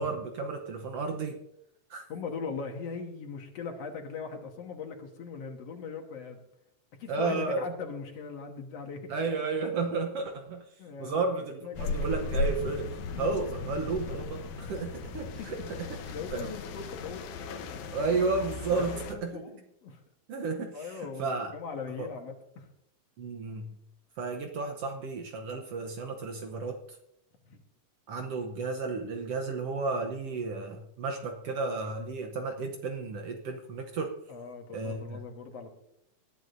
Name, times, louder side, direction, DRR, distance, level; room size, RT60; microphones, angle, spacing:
voice 1, 0.0-1.4 1.9-2.1 7.1-7.6 9.1-10.6 11.0-12.9 13.2-15.9 16.3-16.5 17.9-19.4 20.3-21.5 22.0-22.1 23.2-23.7 24.2-26.8 28.1-34.1 34.7-35.2, right 4 dB, 65° right, 4 dB, 1.7 m, -32 dB
voice 2, 2.1-6.4 7.0-9.1 10.8-11.2 11.6-11.8 12.1-12.2 15.4-15.5 16.1-17.2 18.8-20.0 20.7-22.7 27.5-27.6 34.3-35.7, left 5 dB, 60° left, 3 dB, 2.2 m, -40 dB
sound 1, 11.8-19.2, left 3 dB, 80° left, 2.5 m, -36 dB
20.0 x 11.0 x 2.6 m, 0.79 s
omnidirectional pair, 3.5 m